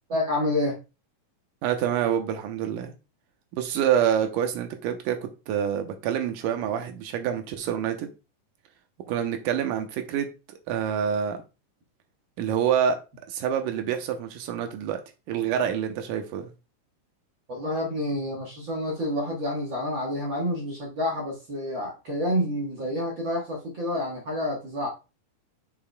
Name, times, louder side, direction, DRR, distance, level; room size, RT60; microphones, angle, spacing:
voice 1, 0.1-0.8 17.5-24.9, left 1 dB, 55° right, 1.4 m, -28 dB
voice 2, 1.6-2.9 3.5-8.1 9.1-10.3 10.7-11.4 12.4-13.0 13.3-15.0 15.3-16.5, right 9 dB, 75° right, 2.3 m, -27 dB
7.2 x 6.8 x 2.2 m
omnidirectional pair, 3.9 m